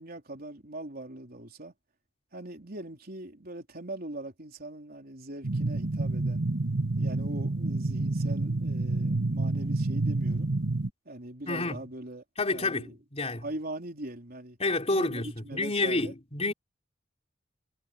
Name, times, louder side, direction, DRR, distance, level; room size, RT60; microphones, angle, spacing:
voice 1, 0.0-1.7 2.3-6.4 7.0-10.5 11.1-12.2 12.5-13.0 13.4-14.6 14.9-16.1, right 1 dB, 50° right, 3.7 m, -41 dB
sound 1, 5.4-10.9, right 2 dB, 75° right, 1.9 m, -28 dB
voice 2, 11.5-11.8 12.4-13.4 14.6-16.5, left 2 dB, 35° left, 3.9 m, -29 dB
head